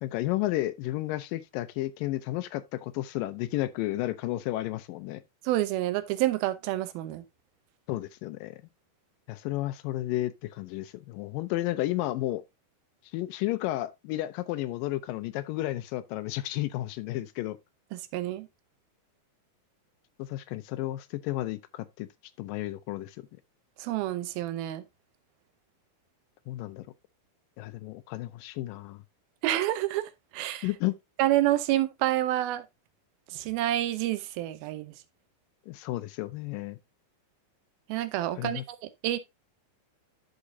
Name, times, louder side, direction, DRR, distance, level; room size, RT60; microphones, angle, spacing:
voice 1, 0.0-5.2 7.9-8.6 9.3-12.4 13.1-17.6 20.2-22.1 22.4-23.2 26.5-26.9 27.6-29.0 30.6-30.9 35.7-36.8 38.4-38.6, left 16 dB, 80° left, 2.2 m, -32 dB
voice 2, 5.4-7.2 17.9-18.5 23.8-24.8 29.4-30.7 31.2-32.7 33.3-34.9 37.9-39.2, right 14 dB, 85° right, 2.6 m, -28 dB
13.0 x 4.8 x 2.7 m
omnidirectional pair, 4.2 m